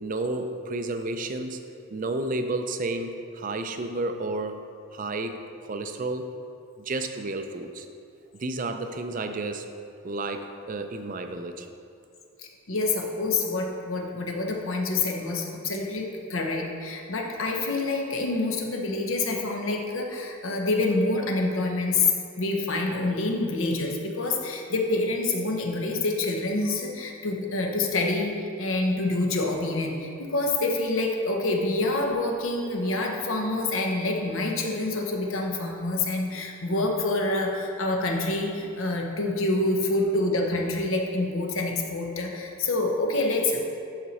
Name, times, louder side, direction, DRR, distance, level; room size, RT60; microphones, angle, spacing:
voice 1, 0.0-1.6 1.9-4.6 4.9-6.3 6.8-7.9 8.4-9.7 10.0-11.7, right 2 dB, 35° right, 7 dB, 0.4 m, -31 dB
voice 2, 12.4-43.7, left 2 dB, 65° left, 1 dB, 0.9 m, -27 dB
11.0 x 4.3 x 4.1 m, 2.5 s
head